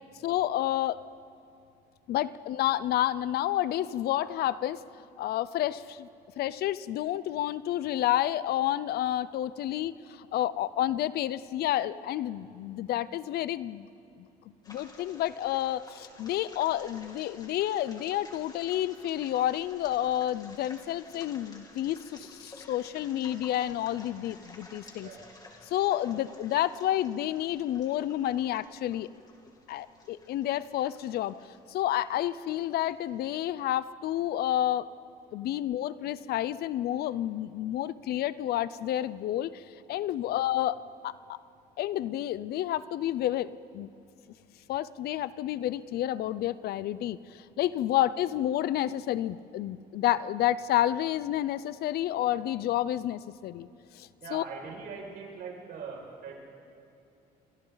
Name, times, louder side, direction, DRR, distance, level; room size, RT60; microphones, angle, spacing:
voice 1, 0.2-1.0 2.1-4.8 5.2-6.1 6.4-13.9 14.7-25.1 25.6-29.1 29.7-31.3 31.7-34.9 35.3-41.4 41.8-43.9 44.7-53.7 53.9-54.4, left 13 dB, 70° left, 17 dB, 0.6 m, -30 dB
sound 1, 14.6-33.4, left 2 dB, 25° left, 2.6 m, -53 dB
voice 2, 54.2-56.3, right 5 dB, 65° right, -1 dB, 6.2 m, -42 dB
29.0 x 24.0 x 4.0 m, 2.6 s
cardioid pair, 110°, 17 cm